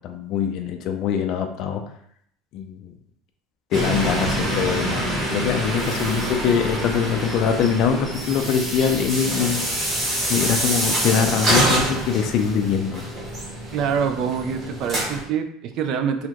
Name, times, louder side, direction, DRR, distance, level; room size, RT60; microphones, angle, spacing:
voice 1, 0.0-1.8 2.5-2.9 3.7-9.6 10.3-13.0, left 7 dB, 45° left, 5 dB, 0.4 m, -23 dB
sound 1, 3.7-15.2, right 1 dB, 25° right, 1.1 m, -25 dB
voice 2, 13.7-16.3, right 7 dB, 40° right, 7 dB, 0.4 m, -25 dB
4.1 x 2.8 x 2.9 m, 0.66 s
cardioid pair, 175°, 0 cm